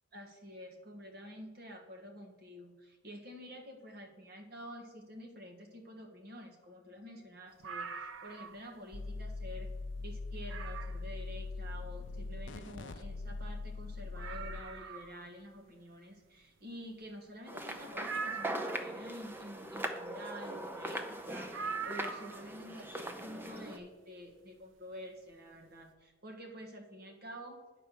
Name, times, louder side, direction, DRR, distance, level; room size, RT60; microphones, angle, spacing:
voice 1, 0.1-9.7 10.0-27.6, equal, 55° right, 2 dB, 1.4 m, -49 dB
sound 1, 7.6-8.7 9.1-9.2 9.7-9.8 10.5-11.1 12.9-13.0 13.1-13.2 13.7-13.8 14.1-15.2 18.0-19.0 21.5-22.5 23.8-23.9, right 5 dB, 85° right, 0.6 m, -42 dB
sound 2, 8.9-14.6, left 3 dB, 65° left, 0.5 m, -41 dB
sound 3, 17.5-23.8, right 1 dB, 10° right, 0.7 m, -41 dB
9.7 x 4.4 x 6.9 m, 1.3 s
head